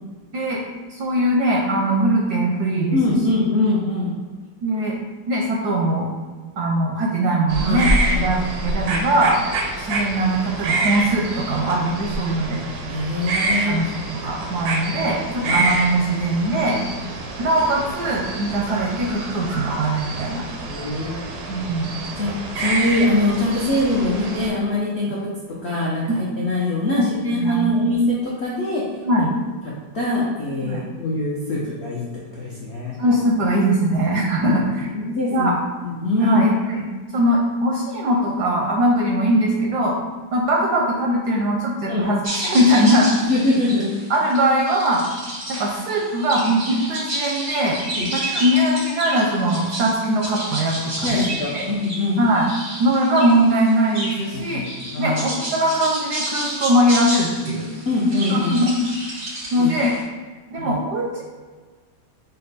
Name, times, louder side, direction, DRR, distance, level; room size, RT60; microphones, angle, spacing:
voice 1, 0.3-0.6 0.9-3.0 4.6-5.0 5.3-6.1 6.6-7.9 8.2-9.4 9.8-12.6 13.7-16.8 17.4-20.5 21.5-21.9 26.1-26.3 27.0-27.7 29.0-29.3 30.6-30.8 33.0-34.9 35.3-35.6 36.2-40.0 40.3-43.2 44.1-45.0 45.5-47.8 48.1-51.2 51.5-51.6 52.2-52.5 52.8-54.6 55.0-57.7 58.3-58.8 59.5-59.9 60.5-61.2, right 1 dB, 70° right, -1 dB, 1.0 m, -21 dB
voice 2, 2.9-4.1 7.6-8.3 12.9-13.8 15.4-15.5 17.0-17.1 20.7-21.2 22.2-22.3 22.5-25.3 25.6-28.8 29.2-29.3 29.9-32.1 32.3-32.9 34.4-34.5 34.9-35.5 35.8-36.4 41.9-42.2 43.2-43.9 47.9-48.1 51.0-52.2 54.3-54.6 54.9-55.2 57.9-58.5 59.6-59.7 60.6-60.7, left 1 dB, 70° left, -6 dB, 0.6 m, -22 dB
sound 1, 7.5-24.5, right 2 dB, 90° right, 1.6 m, -27 dB
sound 2, 42.2-60.0, right 1 dB, 45° right, 0.5 m, -31 dB
5.3 x 2.2 x 4.0 m, 1.5 s
omnidirectional pair, 2.2 m